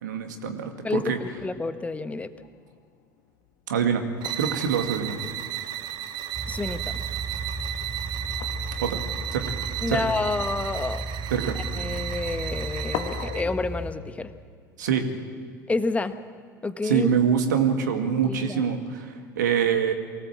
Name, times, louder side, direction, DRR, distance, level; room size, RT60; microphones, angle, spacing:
voice 1, 0.0-1.2 3.7-4.0 4.4-5.2 8.8-9.0 9.3-9.5 9.9-10.0 11.3-11.6 14.8-15.1 16.8-19.9, right 7 dB, 70° right, 6 dB, 2.2 m, -25 dB
voice 2, 0.8-2.3 6.5-6.8 9.8-11.0 11.7-14.3 15.7-16.1 16.6-17.1 18.2-18.6, left 3 dB, 15° left, 11 dB, 1.3 m, -29 dB
sound 1, 0.9-6.8 7.0-7.4 8.4-11.6 12.5-12.6 12.9-16.2 17.1-18.1, left 9 dB, 50° left, 1.5 m, -43 dB
sound 2, 4.2-13.5, right 12 dB, 45° right, 1.0 m, -34 dB
sound 3, 6.3-13.9, right 3 dB, 15° right, 2.3 m, -34 dB
24.0 x 18.0 x 7.5 m, 2.1 s
figure-of-eight pair, 70°, 10 cm